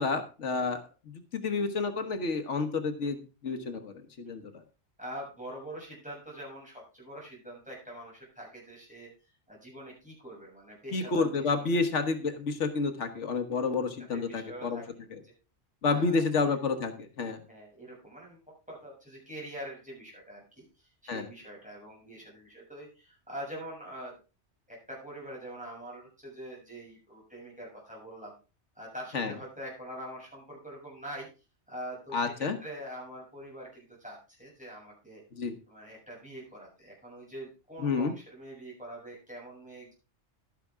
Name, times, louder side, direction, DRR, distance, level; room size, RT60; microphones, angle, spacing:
voice 1, 0.0-4.6 10.9-14.8 15.1-15.2 15.8-17.4 21.1-21.3 29.1-29.3 32.1-32.6 35.3-35.6 37.8-38.1, left 4 dB, 90° left, 8 dB, 1.5 m, -30 dB
voice 2, 5.0-9.1 9.5-11.2 11.5-11.9 14.1-14.8 15.2-15.3 15.9-16.5 17.5-18.4 18.7-20.6 21.0-24.2 24.7-28.3 28.8-31.3 31.7-35.2 35.7-39.9, right 1 dB, 5° right, -4 dB, 7.0 m, -44 dB
11.5 x 10.0 x 3.6 m, 0.31 s
omnidirectional pair, 1.2 m